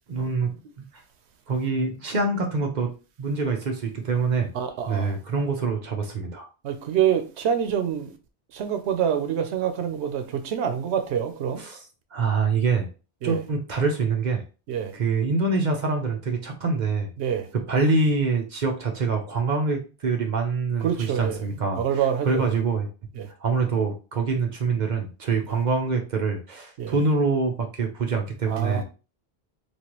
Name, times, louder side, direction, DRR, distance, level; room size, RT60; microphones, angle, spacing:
voice 1, 0.1-0.8 1.5-2.9 3.2-4.5 4.9-6.5 11.6-11.8 12.1-12.9 13.2-14.4 14.9-17.1 17.7-21.8 22.2-22.9 23.4-28.8, right 4 dB, 50° right, 0.7 m, -25 dB
voice 2, 4.5-5.2 6.6-8.1 8.5-11.6 13.2-13.4 14.7-14.9 17.2-17.5 20.8-21.5 21.8-22.5 23.2-23.3 26.8-27.0 28.5-28.8, right 8 dB, 85° right, 0.9 m, -26 dB
3.2 x 2.4 x 2.9 m
omnidirectional pair, 1.1 m